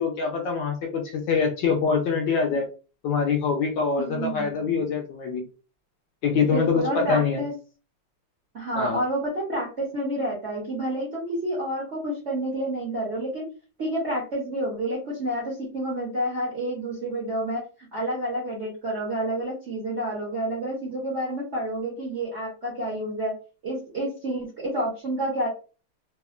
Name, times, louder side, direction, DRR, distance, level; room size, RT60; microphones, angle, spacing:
voice 1, 0.0-2.7 3.0-5.4 6.2-7.5 8.7-9.0, left 5 dB, 75° left, 2 dB, 1.1 m, -24 dB
voice 2, 4.0-4.9 6.5-7.5 8.5-13.4 13.8-23.3 23.6-25.5, right 1 dB, 60° right, -5 dB, 0.7 m, -29 dB
3.5 x 2.1 x 2.4 m, 0.35 s
omnidirectional pair, 2.4 m